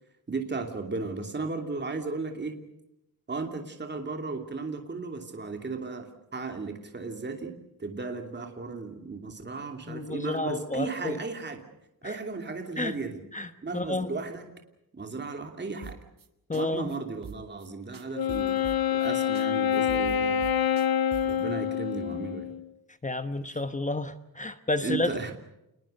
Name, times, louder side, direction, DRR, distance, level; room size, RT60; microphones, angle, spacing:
voice 1, 0.3-2.6 3.3-11.6 12.0-13.2 13.6-14.6 14.9-16.0 16.5-20.5 21.2-22.5 24.8-25.3, right 4 dB, 30° right, 4 dB, 2.9 m, -35 dB
voice 2, 9.9-11.2 12.0-12.2 12.8-13.0 13.3-14.1 16.5-16.9 23.0-25.2, left 2 dB, 20° left, 10 dB, 1.1 m, -31 dB
sound 1, 15.8-16.3 16.5-16.6 16.9-17.0 17.2-17.7 17.9-19.1 19.3-19.5 19.7-21.4, right 6 dB, 65° right, 2.2 m, -43 dB
Wind instrument woodwind instrument, 18.1-22.7, left 9 dB, 80° left, 1.1 m, -27 dB
28.5 x 21.0 x 6.7 m, 0.86 s
wide cardioid pair, 140°, 36 cm